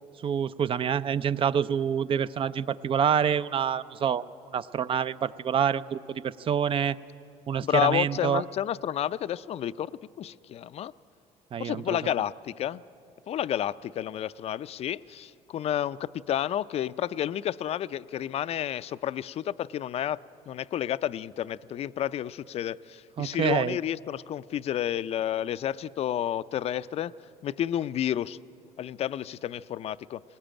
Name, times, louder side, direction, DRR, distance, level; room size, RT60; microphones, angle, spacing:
voice 1, 0.2-4.2 4.5-7.0 7.5-8.4 11.5-12.0 23.2-23.8, right 8 dB, 40° right, 15 dB, 0.5 m, -27 dB
voice 2, 7.6-10.9 11.6-12.8 13.3-20.2 20.5-27.1 27.4-28.4 28.8-30.2, left 11 dB, 50° left, 16 dB, 0.4 m, -30 dB
19.5 x 19.0 x 8.9 m, 2.7 s
cardioid pair, 100°, 13 cm